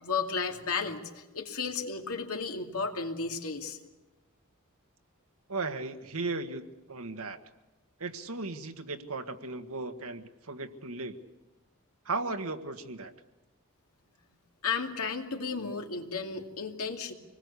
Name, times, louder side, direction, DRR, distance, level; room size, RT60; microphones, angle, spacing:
voice 1, 0.0-3.8 14.6-17.1, left 5 dB, 85° left, 3 dB, 2.6 m, -33 dB
voice 2, 5.5-7.4 8.0-11.1 12.0-13.1, right 3 dB, 85° right, 7 dB, 1.7 m, -36 dB
26.5 x 20.0 x 8.3 m, 1.1 s
head